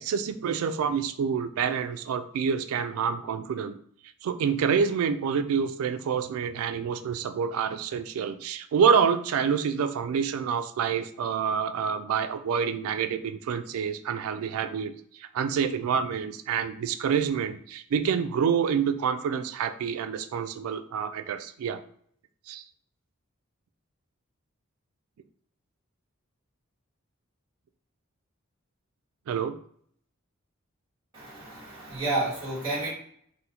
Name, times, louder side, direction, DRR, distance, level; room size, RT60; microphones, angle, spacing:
voice 1, 0.0-3.8 4.2-21.8 22.5-22.6 29.3-29.6, right 6 dB, 85° right, 10 dB, 0.3 m, -27 dB
voice 2, 31.1-32.9, right 2 dB, 20° right, -8 dB, 1.2 m, -30 dB
3.7 x 2.1 x 2.8 m, 0.62 s
head